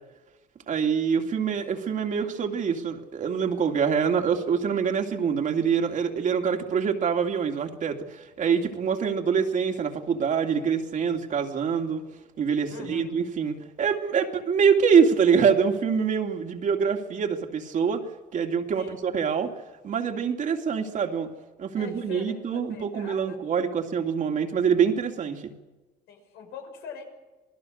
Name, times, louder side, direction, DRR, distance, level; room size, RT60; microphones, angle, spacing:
voice 1, 0.7-12.0 12.4-18.0 18.3-19.5 19.8-21.3 21.6-25.5, right 6 dB, 50° right, 4 dB, 2.7 m, -25 dB
voice 2, 12.7-13.1 18.8-19.0 21.8-23.4 26.1-27.0, left 6 dB, 85° left, 3 dB, 6.7 m, -42 dB
27.5 x 19.5 x 6.6 m, 1.2 s
cardioid pair, 110°, 17 cm